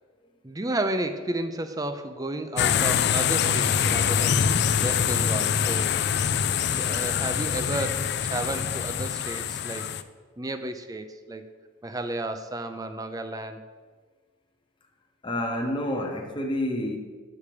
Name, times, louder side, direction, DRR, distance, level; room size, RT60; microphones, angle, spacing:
voice 1, 0.4-4.4 4.8-6.0 6.7-9.9 10.4-11.5 11.8-13.6, right 1 dB, 20° right, 9 dB, 0.5 m, -32 dB
sound 1, 2.6-10.0, left 8 dB, 55° left, 0.4 m, -24 dB
voice 2, 15.2-17.0, left 1 dB, 25° left, 2 dB, 0.9 m, -28 dB
8.6 x 7.1 x 4.9 m, 1.5 s
head